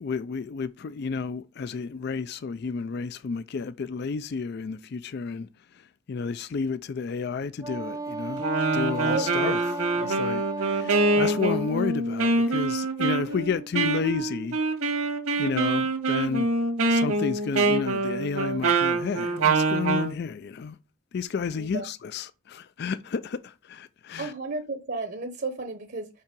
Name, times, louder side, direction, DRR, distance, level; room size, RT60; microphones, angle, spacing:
voice 1, 0.0-5.5 6.1-8.5 8.7-9.6 10.0-14.6 15.4-16.5 16.9-20.8 21.1-24.3, left 5 dB, 50° left, 0.3 m, -31 dB
Wind instrument woodwind instrument, 7.6-11.8, right 2 dB, 15° right, 0.5 m, -34 dB
Wind instrument woodwind instrument 2, 8.4-20.1, right 3 dB, 90° right, 1.9 m, -25 dB
voice 2, 9.1-9.7 10.0-10.2 21.5-21.9 24.2-26.1, right 3 dB, 45° right, 0.8 m, -33 dB
5.6 x 5.6 x 5.2 m
head